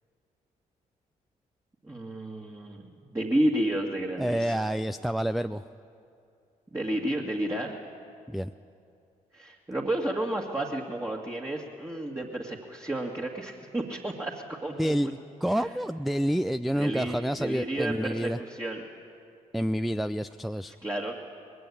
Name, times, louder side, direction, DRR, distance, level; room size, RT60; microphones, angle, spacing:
voice 1, 1.8-4.7 6.7-7.8 9.3-15.1 15.5-15.7 16.8-18.9 20.8-21.1, right 1 dB, 15° right, -1 dB, 2.0 m, -31 dB
voice 2, 4.2-5.6 8.3-8.5 14.8-18.4 19.5-20.7, equal, ahead, 11 dB, 0.4 m, -28 dB
20.0 x 16.0 x 8.6 m, 2.5 s
hypercardioid pair, 40°, 19 cm